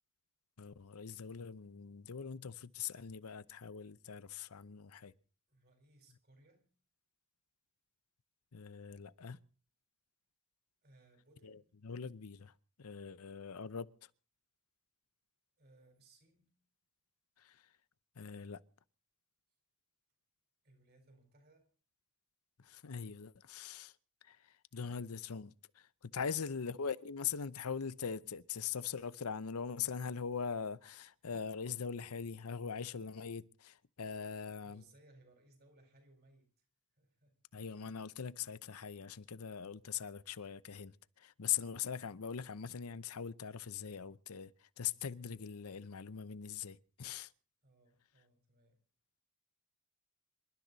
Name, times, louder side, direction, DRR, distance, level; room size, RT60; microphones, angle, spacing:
voice 1, 0.6-5.1 8.5-9.4 11.4-14.1 17.4-17.7 18.1-18.6 22.6-24.0 24.2-34.8 37.5-47.3, left 7 dB, 85° left, 0.7 m, -42 dB
voice 2, 5.5-6.7 10.8-11.7 15.6-16.5 20.6-21.7 34.6-36.7 36.9-37.6 47.6-48.8, right 2 dB, 45° right, 4.3 m, -66 dB
27.0 x 12.0 x 4.0 m
head